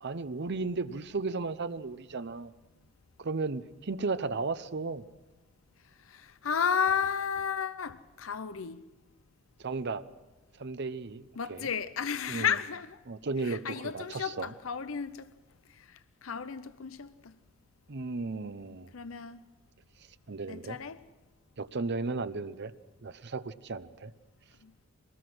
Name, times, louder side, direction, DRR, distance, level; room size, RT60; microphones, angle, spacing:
voice 1, 0.0-2.5 3.2-5.0 9.6-10.0 10.6-11.2 11.5-11.7 12.3-12.5 13.1-14.5 17.9-18.9 20.3-20.8 21.6-22.7 23.0-24.1, right 3 dB, 55° right, 0.7 m, -34 dB
voice 2, 6.0-8.8 11.4-13.0 13.4-15.3 15.7-17.4 18.9-19.4 20.5-21.0 24.6-24.7, left 7 dB, 85° left, 0.7 m, -33 dB
23.5 x 19.0 x 6.2 m
head